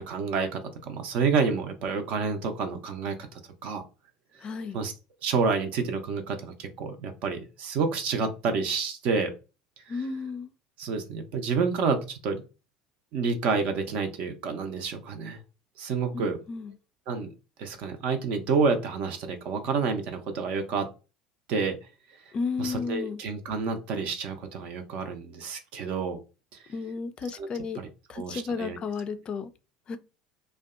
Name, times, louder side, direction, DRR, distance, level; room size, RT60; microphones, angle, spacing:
voice 1, 0.0-3.8 4.7-4.9 5.2-9.3 9.9-10.1 10.8-12.4 13.1-15.4 15.8-16.4 17.1-17.3 17.6-20.9 21.5-21.8 22.6-26.2 27.3-27.5 27.7-27.9 28.1-28.8, right 5 dB, 50° right, 0.5 m, -29 dB
voice 2, 4.4-4.8 9.9-10.5 16.1-16.7 22.3-23.2 26.7-27.8 28.1-29.5 29.9-30.0, left 4 dB, 35° left, 0.3 m, -33 dB
2.6 x 2.1 x 2.3 m
figure-of-eight pair, 70°, 3 cm